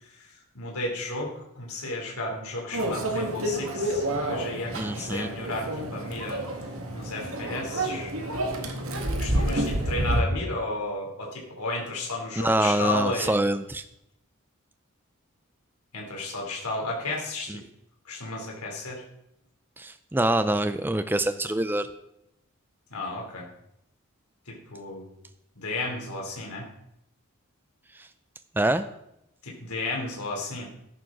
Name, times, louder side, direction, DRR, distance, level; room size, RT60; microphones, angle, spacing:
voice 1, 0.2-6.4 6.9-8.1 9.2-13.5 15.9-17.6 18.1-19.0 22.9-23.5 24.5-25.1 25.6-26.7 29.4-30.7, left 2 dB, 85° left, -1 dB, 3.4 m, -33 dB
Microwave oven, 2.7-10.2, right 1 dB, 70° right, 2.0 m, -29 dB
voice 2, 4.8-5.3 12.4-13.8 17.5-17.6 19.8-21.9 28.0-28.1 28.6-28.9, right 1 dB, 10° right, 11 dB, 0.4 m, -25 dB
14.0 x 10.5 x 3.9 m, 0.80 s
head